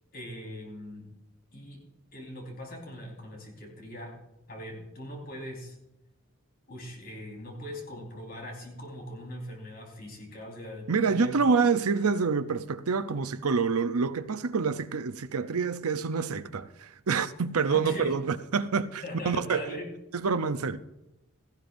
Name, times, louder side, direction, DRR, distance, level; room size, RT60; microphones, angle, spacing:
voice 1, 0.1-1.1 1.5-1.8 2.1-4.1 4.5-5.8 6.7-11.3 17.7-18.1 19.0-19.9, left 1 dB, 40° left, 4.4 m, -41 dB
voice 2, 10.9-19.6 20.1-20.8, right 5 dB, 80° right, 0.7 m, -27 dB
17.5 x 15.5 x 2.6 m
head